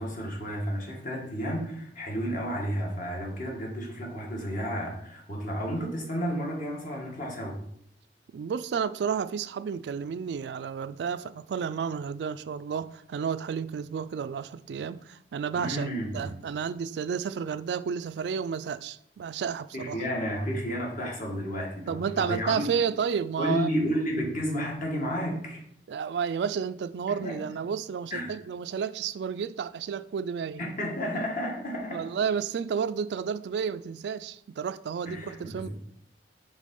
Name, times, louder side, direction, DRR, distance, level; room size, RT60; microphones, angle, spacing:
voice 1, 0.0-7.6 15.5-16.3 19.7-22.7 23.4-25.6 27.1-27.5 28.1-28.3 30.6-32.1 35.1-35.7, equal, 50° left, 1.6 m, -32 dB
voice 2, 8.3-15.9 16.1-20.0 21.9-23.7 25.9-30.6 31.1-31.2 31.9-35.7, right 7 dB, 70° right, 0.3 m, -31 dB
5.3 x 3.7 x 5.3 m
head